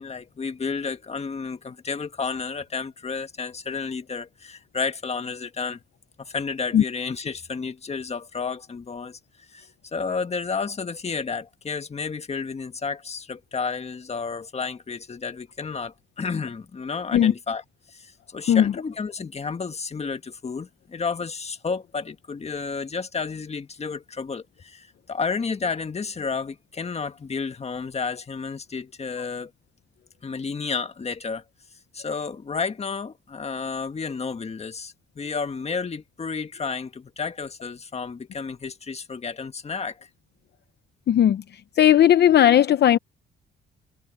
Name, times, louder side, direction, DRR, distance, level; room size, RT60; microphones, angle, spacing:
voice 1, 0.0-5.8 6.2-9.2 9.5-17.6 17.9-29.5 30.2-31.4 31.9-40.0, left 5 dB, 30° left, 1.8 m, -31 dB
voice 2, 41.1-41.4 41.8-43.0, left 10 dB, 60° left, 0.8 m, -16 dB
cardioid pair, 90°, 20 cm